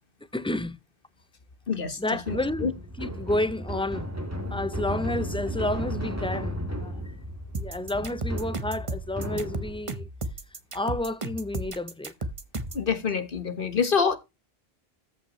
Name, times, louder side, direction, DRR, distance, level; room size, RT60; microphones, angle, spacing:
voice 1, 0.3-0.8 2.0-2.7 3.0-4.1 4.5-7.0 7.5-10.1 10.7-12.1, left 2 dB, 5° left, 0.4 m, -30 dB
voice 2, 1.7-2.0 2.3-2.7 4.5-4.6 12.7-14.2, left 6 dB, 60° left, 1.6 m, -26 dB
sound 1, 2.2-10.0, equal, 15° right, 1.8 m, -34 dB
sound 2, 7.5-12.9, right 2 dB, 30° right, 1.0 m, -34 dB
14.0 x 5.6 x 3.1 m
omnidirectional pair, 1.1 m